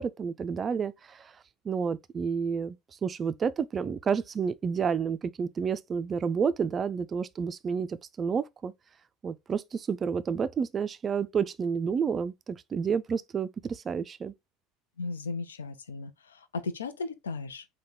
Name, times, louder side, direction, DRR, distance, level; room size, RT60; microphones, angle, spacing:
voice 1, 0.0-1.4 1.6-8.7 9.2-14.3, right 6 dB, 35° right, 0.3 m, -30 dB
voice 2, 15.0-17.7, left 4 dB, 90° left, 0.4 m, -36 dB
3.5 x 2.2 x 2.7 m
hypercardioid pair, 75°, 0 cm